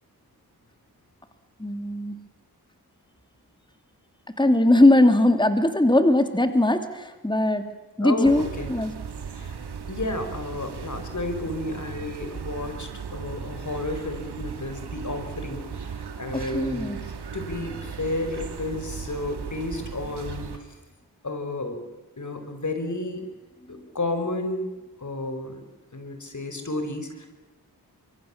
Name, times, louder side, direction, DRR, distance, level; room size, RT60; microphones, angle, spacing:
voice 1, 1.6-2.2 4.4-7.6 8.0-8.9 16.5-17.0, left 1 dB, 10° left, 8 dB, 2.7 m, -20 dB
voice 2, 8.0-8.7 9.3-9.6 9.9-20.8 21.2-21.8 22.2-23.2 23.7-24.7 25.0-25.6 25.9-27.3, left 2 dB, 50° left, 7 dB, 5.3 m, -32 dB
sound 1, 8.2-20.6, right 6 dB, 80° right, 2.2 m, -37 dB
24.5 x 23.0 x 7.3 m, 1.1 s
cardioid pair, 40°, 39 cm